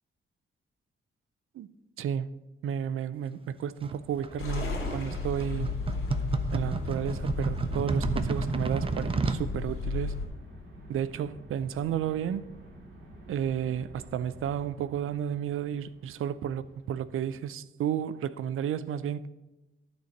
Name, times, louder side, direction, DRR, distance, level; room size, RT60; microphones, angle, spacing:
voice 1, 2.0-2.3 2.6-5.7 6.5-10.2 10.9-12.4 13.3-19.3, right 9 dB, 90° right, 0.5 m, -32 dB
sound 1, 3.8-9.4, right 4 dB, 25° right, 0.5 m, -32 dB
sound 2, 3.8-17.1, right 1 dB, 65° right, 2.8 m, -51 dB
sound 3, 4.4-10.3, left 3 dB, 85° left, 2.8 m, -34 dB
12.0 x 4.3 x 6.5 m
wide cardioid pair, 155°, 21 cm